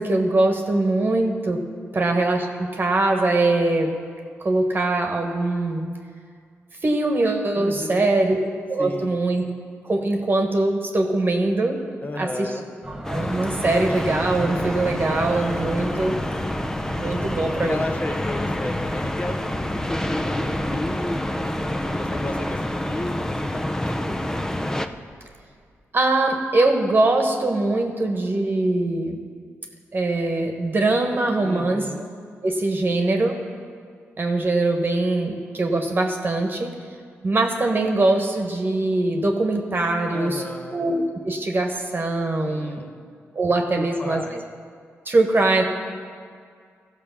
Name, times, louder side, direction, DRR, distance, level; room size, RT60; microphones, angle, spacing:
voice 1, 0.0-1.6 1.9-4.0 4.4-5.9 6.8-9.4 9.8-11.8 12.2-12.5 13.0-16.2 16.9-17.8 25.9-29.2 29.9-31.8 32.4-33.4 34.2-36.7 37.2-40.4 40.7-42.8 43.3-44.4 45.1-45.6, right 2 dB, 40° right, 2 dB, 1.2 m, -22 dB
voice 2, 7.5-8.2 8.8-9.2 12.0-12.7 17.2-19.6 19.9-21.5 21.9-22.6 22.9-24.2 31.4-32.1 40.1-40.9 42.4-43.0 43.8-44.4, left 2 dB, 30° left, 5 dB, 0.9 m, -33 dB
sound 1, 12.8-25.4, right 1 dB, 10° right, 1.7 m, -38 dB
sound 2, 13.0-24.9, left 1 dB, 10° left, 0.6 m, -27 dB
14.5 x 4.9 x 7.1 m, 2.1 s
cardioid pair, 60°, 5 cm